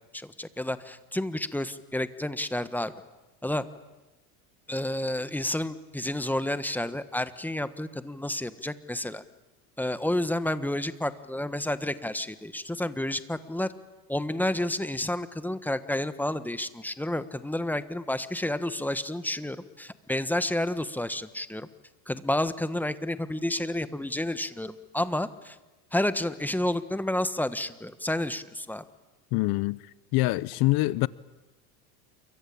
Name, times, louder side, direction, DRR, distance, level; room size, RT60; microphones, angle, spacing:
voice 1, 0.1-2.9 3.4-3.6 4.7-9.2 9.8-13.7 14.1-21.7 22.1-25.6 25.9-28.8, left 1 dB, 5° left, 1.3 m, -30 dB
voice 2, 29.3-29.8 30.1-31.1, left 21 dB, 50° left, 0.8 m, -24 dB
28.5 x 23.5 x 8.6 m
supercardioid pair, 120°, 46 cm